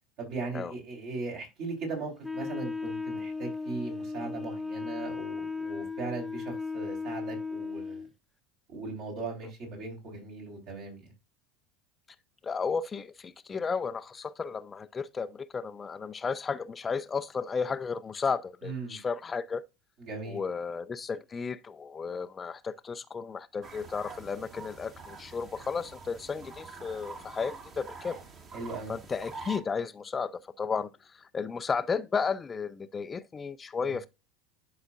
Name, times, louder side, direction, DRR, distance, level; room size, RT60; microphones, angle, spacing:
voice 1, 0.2-8.0 8.7-11.1 18.6-19.0 20.0-20.4 28.5-28.9 33.8-34.0, right 3 dB, 55° right, 4.2 m, -38 dB
Wind instrument woodwind instrument, 2.2-8.1, left 4 dB, 5° left, 0.8 m, -36 dB
voice 2, 12.4-19.6 20.3-28.2 28.9-34.1, left 5 dB, 25° left, 0.4 m, -33 dB
sound 1, 23.6-29.6, right 3 dB, 40° right, 2.1 m, -46 dB
11.5 x 4.8 x 2.5 m
figure-of-eight pair, 75°, 0 cm